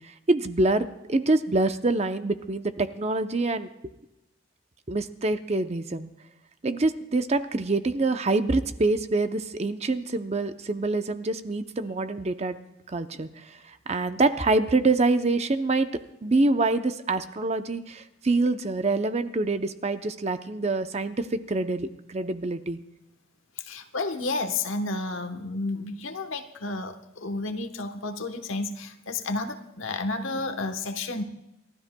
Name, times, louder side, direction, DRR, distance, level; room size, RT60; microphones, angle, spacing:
voice 1, 0.3-3.7 4.9-6.1 6.6-12.6 12.9-15.9 16.2-22.8, right 2 dB, 35° right, 9 dB, 0.6 m, -25 dB
voice 2, 23.6-31.2, left 3 dB, 85° left, 8 dB, 1.1 m, -31 dB
29.5 x 12.5 x 2.2 m, 0.92 s
head